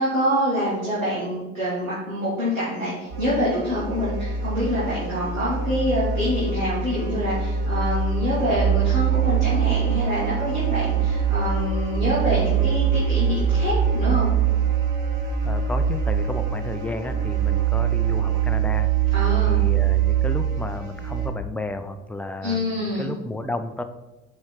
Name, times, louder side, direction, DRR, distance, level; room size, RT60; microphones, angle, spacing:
voice 1, 0.0-14.3 19.1-19.6 22.4-23.1, equal, 90° right, -9 dB, 2.1 m, -26 dB
sound 1, 3.1-21.3, right 7 dB, 50° right, 2.0 m, -23 dB
voice 2, 15.4-18.9 19.5-23.8, left 2 dB, 5° left, 8 dB, 0.4 m, -32 dB
7.6 x 3.7 x 4.6 m, 1.0 s
hypercardioid pair, 65°, 40 cm